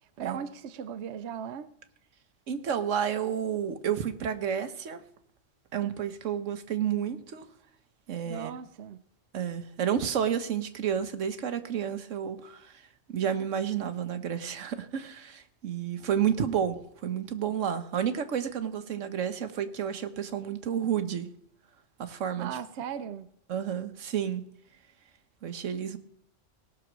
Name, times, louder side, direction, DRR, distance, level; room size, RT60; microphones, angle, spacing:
voice 1, 0.2-1.7 8.3-9.0 22.4-23.3, right 8 dB, 65° right, 0.9 m, -37 dB
voice 2, 2.5-5.0 5.7-7.4 8.1-8.5 9.3-12.8 13.1-21.3 22.0-22.5 23.5-24.4 25.4-26.0, right 8 dB, 90° right, 1.3 m, -31 dB
18.0 x 6.1 x 6.1 m
omnidirectional pair, 1.3 m